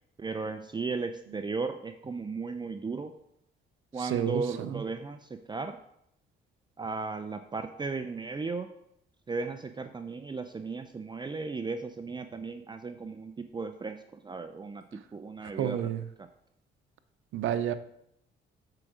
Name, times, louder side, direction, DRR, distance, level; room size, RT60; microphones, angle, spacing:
voice 1, 0.2-3.1 3.9-5.8 6.8-8.7 9.3-15.9 16.2-16.3, right 4 dB, 20° right, 7 dB, 0.5 m, -36 dB
voice 2, 4.0-4.8 15.6-16.0 17.3-17.7, right 9 dB, 85° right, 12 dB, 0.6 m, -30 dB
7.6 x 4.9 x 6.1 m, 0.77 s
cardioid pair, 90°, 20 cm